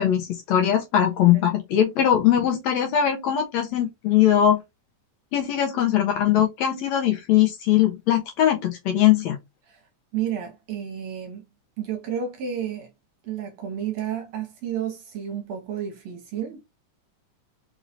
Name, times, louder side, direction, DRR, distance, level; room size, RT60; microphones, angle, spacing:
voice 1, 0.0-4.6 5.3-9.4, left 10 dB, 75° left, 1.7 m, -21 dB
voice 2, 10.1-11.4 11.8-12.9 13.2-16.6, right 9 dB, 65° right, 2.0 m, -31 dB
5.0 x 3.1 x 2.6 m
omnidirectional pair, 3.5 m